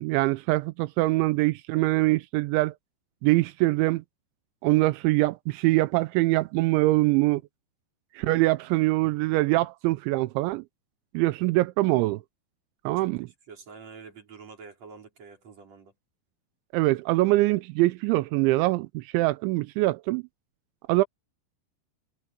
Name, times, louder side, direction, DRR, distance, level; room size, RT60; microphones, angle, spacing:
voice 1, 0.0-2.7 3.2-4.0 4.6-7.4 8.2-10.6 11.1-12.2 12.9-13.3 16.7-20.2 20.9-21.0, right 20 dB, 85° right, 3.0 m, -23 dB
voice 2, 13.0-15.9, right 5 dB, 35° right, 5.7 m, -47 dB
omnidirectional pair, 5.3 m